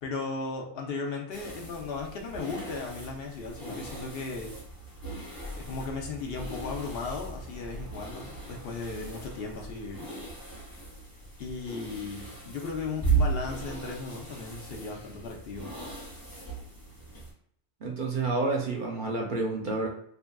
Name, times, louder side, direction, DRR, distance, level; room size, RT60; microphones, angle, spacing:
voice 1, 0.0-4.5 5.6-10.1 11.4-15.7, left 4 dB, 65° left, 1 dB, 0.8 m, -36 dB
sound 1, 1.3-17.3, right 4 dB, 20° left, 0.9 m, -36 dB
voice 2, 17.8-19.9, right 3 dB, 55° right, -1 dB, 0.6 m, -29 dB
3.3 x 2.4 x 2.2 m, 0.66 s
omnidirectional pair, 1.1 m